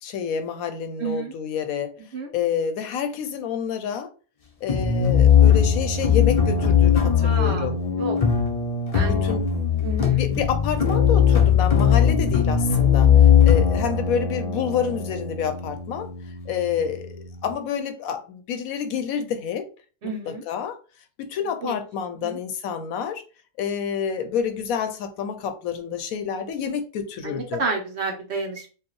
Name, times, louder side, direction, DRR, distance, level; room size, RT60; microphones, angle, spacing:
voice 1, 0.0-1.9 2.3-4.1 4.6-7.8 9.0-9.5 10.2-16.1 16.5-19.7 20.3-20.8 21.2-23.2 23.6-27.6, left 7 dB, 75° left, 1.0 m, -28 dB
voice 2, 1.0-1.3 2.1-2.3 7.2-7.7 8.0-8.2 8.9-9.2 9.8-10.2 20.0-20.4 21.4-21.8 22.2-22.4 27.2-28.7, right 3 dB, 55° right, 0.9 m, -30 dB
sound 1, 4.7-17.5, left 8 dB, 50° left, 0.4 m, -20 dB
4.6 x 2.3 x 3.1 m
omnidirectional pair, 1.6 m